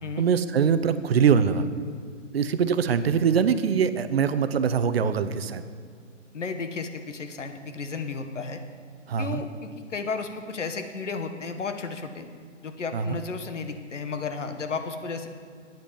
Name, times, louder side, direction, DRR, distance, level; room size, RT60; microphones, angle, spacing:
voice 1, 0.2-1.7 2.3-5.6 9.1-9.4 12.9-13.2, right 7 dB, 50° right, 12 dB, 0.7 m, -23 dB
voice 2, 6.3-8.6 9.2-12.3 12.6-15.3, left 4 dB, 70° left, 7 dB, 1.2 m, -33 dB
9.0 x 8.1 x 7.4 m, 2.1 s
figure-of-eight pair, 125°, 38 cm